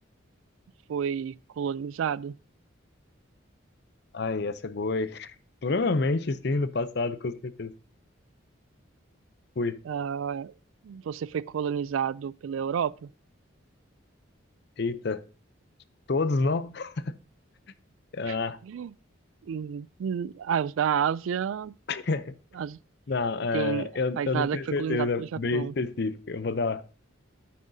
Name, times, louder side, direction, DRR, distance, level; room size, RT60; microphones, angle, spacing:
voice 1, 0.9-2.3 9.9-10.5 10.8-13.1 18.3-18.4 18.6-18.9 19.4-21.7 22.5-22.8 23.5-23.9 24.2-25.7, right 8 dB, 80° right, 0.3 m, -30 dB
voice 2, 4.1-5.3 5.6-7.7 9.6-9.8 14.8-15.2 16.1-17.2 18.1-18.6 21.9-22.3 23.1-26.8, left 3 dB, 55° left, 0.6 m, -28 dB
9.9 x 8.7 x 2.7 m
head